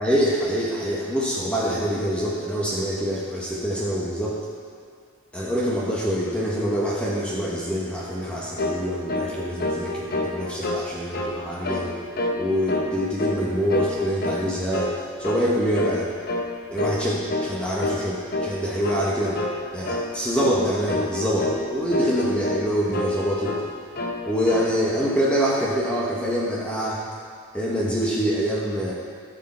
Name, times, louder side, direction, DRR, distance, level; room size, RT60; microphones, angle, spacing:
voice 1, 0.0-4.4 5.3-12.0 12.4-14.9 15.2-16.1 16.7-19.4 19.7-23.5 24.3-27.0 27.5-28.9, equal, 5° left, -5 dB, 1.1 m, -25 dB
sound 1, 8.6-8.8 9.1-9.3 9.6-10.8 11.1-11.4 11.6-11.9 12.2-12.4 12.7-13.4 13.7-14.5 14.7-15.0 15.2-15.5 15.7-16.0 16.3-16.5 16.8-17.0 17.3-17.5 17.8-18.0 18.3-18.6 18.8-19.0 19.4-19.6 19.9-20.1 20.4-20.6 20.9-21.6 21.9-22.7 22.9-23.7 24.0-24.7, left 2 dB, 45° left, 0.9 m, -27 dB
14.5 x 6.6 x 4.3 m, 2.2 s
head